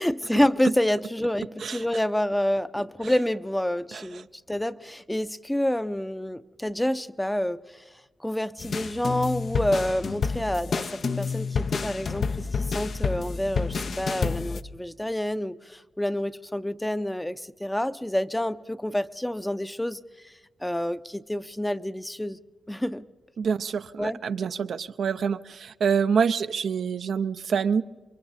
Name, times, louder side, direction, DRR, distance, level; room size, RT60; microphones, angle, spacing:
voice 1, 0.0-7.8 8.2-20.3 20.6-22.4 22.7-23.1 24.0-24.2, left 1 dB, 10° left, 0.6 m, -28 dB
sound 1, 8.6-14.6, left 5 dB, 65° left, 0.7 m, -29 dB
voice 2, 23.4-27.8, right 6 dB, 75° right, 0.5 m, -26 dB
27.5 x 23.5 x 4.1 m
cardioid pair, 60°, 0 cm